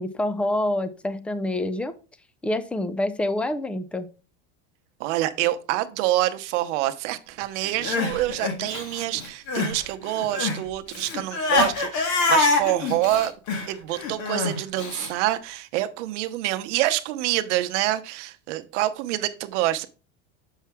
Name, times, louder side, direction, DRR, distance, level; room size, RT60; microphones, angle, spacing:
voice 1, 0.0-1.9 2.4-4.1, left 1 dB, 5° left, 0.3 m, -26 dB
voice 2, 5.0-13.3 13.7-19.9, right 15 dB, 75° right, 0.9 m, -26 dB
Crying sobbing, 7.6-9.8 10.0-15.1, left 3 dB, 55° left, 1.8 m, -25 dB
7.3 x 5.6 x 3.5 m
supercardioid pair, 120°, 36 cm